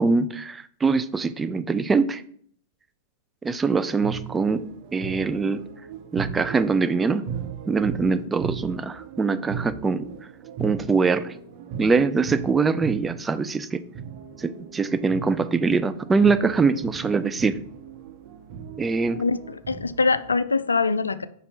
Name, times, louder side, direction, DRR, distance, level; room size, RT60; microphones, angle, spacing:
voice 1, 0.0-2.2 3.4-4.6 4.9-5.6 6.1-7.3 7.7-10.1 10.6-11.3 11.8-13.8 14.4-17.5 18.8-19.2, right 4 dB, 15° right, 12 dB, 0.4 m, -23 dB
sound 1, 4.0-20.3, right 8 dB, 50° right, 0.8 m, -37 dB
voice 2, 19.1-21.3, left 4 dB, 90° left, 13 dB, 0.3 m, -24 dB
5.2 x 4.3 x 4.7 m, 0.62 s
hypercardioid pair, 105°, 0 cm